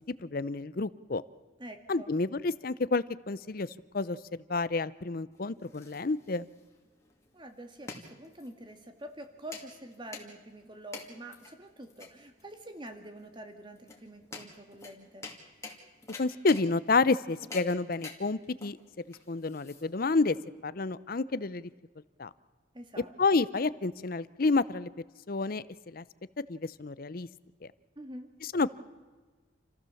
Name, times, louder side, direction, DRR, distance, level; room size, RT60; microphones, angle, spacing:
voice 1, 0.2-1.2 1.9-3.7 3.9-4.2 4.5-6.5 16.2-18.8 19.1-20.4 20.6-21.7 22.2-22.3 23.2-24.9 25.3-26.0 26.5-27.3 28.5-28.7, left 3 dB, 45° left, 16 dB, 0.6 m, -29 dB
voice 2, 1.6-2.1 7.3-15.3 22.7-23.4 28.0-28.3, right 1 dB, 25° right, 6 dB, 2.0 m, -46 dB
sound 1, 5.3-20.2, left 3 dB, 15° left, 2.4 m, -48 dB
28.5 x 15.0 x 7.1 m, 1.4 s
head